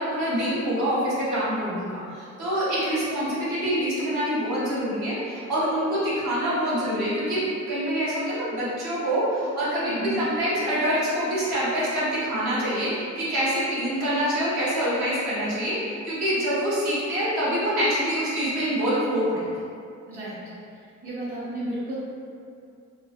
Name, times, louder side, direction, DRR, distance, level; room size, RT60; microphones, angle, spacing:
voice 1, 0.0-19.5, equal, 70° right, -9 dB, 1.2 m, -26 dB
voice 2, 9.9-10.2 20.1-20.3 21.0-22.0, right 1 dB, 30° right, -12 dB, 1.0 m, -32 dB
3.0 x 2.2 x 2.9 m, 2.4 s
cardioid pair, 90°, 30 cm